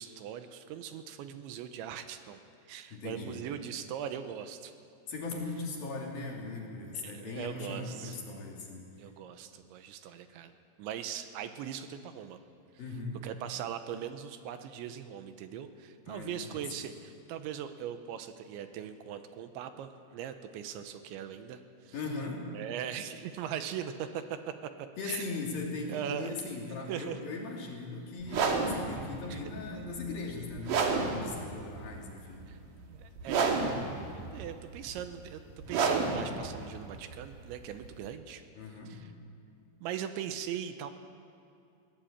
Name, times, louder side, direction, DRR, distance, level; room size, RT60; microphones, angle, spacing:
voice 1, 0.0-2.4 2.7-4.7 7.0-8.2 9.0-10.5 10.8-12.4 13.2-22.0 22.5-25.3 25.9-26.4 26.9-27.2 29.3-29.4 30.9-31.1 32.5-32.6 32.9-33.6 34.1-35.4 35.7-38.4 38.9-39.0 39.8-40.9, right 9 dB, 80° right, 9 dB, 3.2 m, -40 dB
voice 2, 2.9-3.4 5.1-8.9 12.8-13.2 16.1-16.6 21.9-22.5 25.0-32.5 38.6-39.0, left 3 dB, 55° left, -1 dB, 4.4 m, -39 dB
sound 1, 28.2-38.1, right 4 dB, 55° right, 2.8 m, -32 dB
22.0 x 18.0 x 8.9 m, 2.6 s
omnidirectional pair, 5.4 m